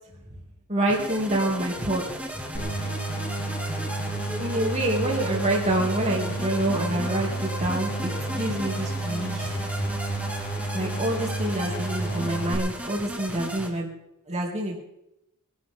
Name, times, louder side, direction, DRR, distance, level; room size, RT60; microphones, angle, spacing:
voice 1, 0.7-2.0 4.4-9.6 10.7-13.9 14.3-14.8, right 1 dB, 30° right, -2 dB, 2.7 m, -27 dB
sound 1, 0.9-13.7, equal, 5° right, 2.2 m, -35 dB
sound 2, 2.5-12.5, right 2 dB, 45° left, 2.1 m, -31 dB
22.0 x 12.0 x 3.8 m, 0.84 s
head